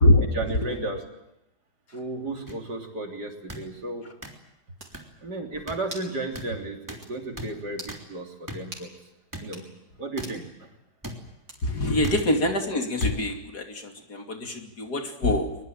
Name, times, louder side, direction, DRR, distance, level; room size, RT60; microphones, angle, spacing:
voice 1, 0.2-1.1 1.9-4.1 5.2-8.9 9.4-9.7 10.0-10.7, right 2 dB, 85° right, 2 dB, 3.9 m, -34 dB
sound 1, 2.5-2.6 3.5-3.6 4.2-4.3 4.9-5.0 5.7-5.8 6.3-6.5 6.9-7.0 7.3-7.5 7.9-8.0 8.5-8.6 9.3-9.4 10.2-10.3 11.0-11.2 12.0-12.2 13.0-13.1 14.0-14.1, equal, 10° right, 3.4 m, -37 dB
sound 2, 4.8-5.0 5.9-6.2 6.5-6.6 7.0-7.2 7.7-8.0 8.7-8.9 9.4-9.7 10.2-10.4 11.5-11.8, right 2 dB, 65° right, 4.9 m, -42 dB
voice 2, 11.6-15.7, left 1 dB, 75° left, 3 dB, 3.4 m, -24 dB
22.5 x 22.0 x 9.0 m, 0.87 s
omnidirectional pair, 1.7 m